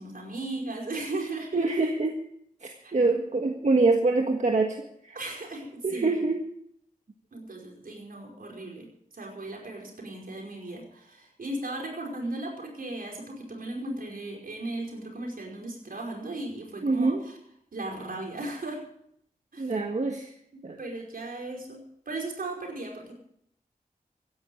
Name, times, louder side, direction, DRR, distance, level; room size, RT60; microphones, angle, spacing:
voice 1, 0.0-1.7 2.8-2.9 5.1-6.2 7.3-8.9 9.1-17.4 17.7-18.8 19.5-19.7 20.5-23.1, right 2 dB, 75° right, 0 dB, 5.1 m, -36 dB
voice 2, 1.5-2.1 2.6-5.2 5.8-6.4 16.8-17.2 19.6-20.3 20.6-20.8, right 3 dB, 55° right, 3 dB, 1.6 m, -25 dB
16.0 x 11.0 x 6.4 m, 0.72 s
wide cardioid pair, 75°, 15 cm